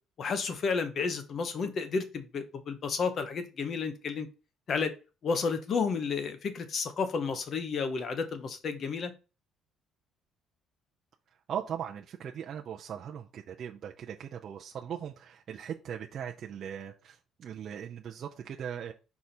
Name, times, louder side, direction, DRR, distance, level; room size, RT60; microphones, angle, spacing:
voice 1, 0.2-4.3 4.7-4.9 5.2-9.1, left 5 dB, 40° left, 9 dB, 1.0 m, -31 dB
voice 2, 11.5-18.9, right 8 dB, 40° right, 1 dB, 0.6 m, -39 dB
5.3 x 4.8 x 4.4 m, 0.32 s
cardioid pair, 155°, 0 cm